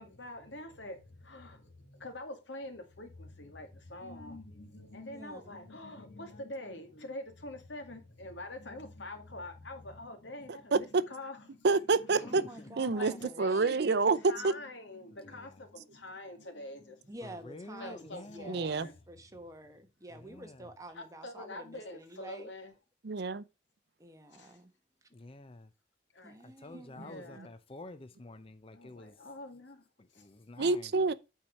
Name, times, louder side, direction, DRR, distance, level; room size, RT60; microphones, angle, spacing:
voice 1, 0.0-11.5 12.1-17.1 17.8-18.9 20.9-22.7 24.3-24.6 26.1-26.4 26.9-27.5 28.7-29.8 30.1-30.3, left 1 dB, 90° left, 2.2 m, -45 dB
voice 2, 5.1-5.5 12.2-13.6 17.1-22.5 24.0-24.7 25.0-25.1 26.2-27.4, right 1 dB, 20° right, 1.2 m, -49 dB
voice 3, 11.6-12.4 12.8-13.1 13.4-14.5 18.5-18.9 23.0-23.4 26.7-26.8 30.6-31.1, right 4 dB, 65° right, 0.5 m, -27 dB
voice 4, 12.4-13.2 15.1-15.7 17.2-18.6 20.1-20.7 25.1-25.7 26.4-29.1 30.0-30.9, left 2 dB, 30° left, 0.6 m, -50 dB
8.8 x 4.6 x 5.3 m
head